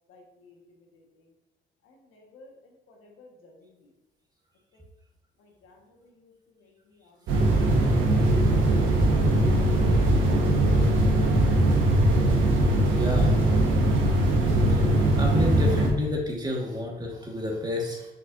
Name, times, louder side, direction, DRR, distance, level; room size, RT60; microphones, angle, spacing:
voice 1, 0.1-0.5 0.9-1.2 1.8-2.5 2.9-3.7 4.7-4.8 5.4-6.3 6.6-7.4 7.7-8.2 8.9-9.4 9.7-9.8, left 2 dB, 80° left, 0 dB, 1.5 m, -56 dB
sound 1, 7.3-15.9, right 1 dB, 80° right, 1.3 m, -21 dB
voice 2, 12.9-13.3 14.7-14.8 15.2-18.1, left 1 dB, 20° right, -1 dB, 1.7 m, -29 dB
6.5 x 5.7 x 2.6 m, 1.1 s
cardioid pair, 90°, 20 cm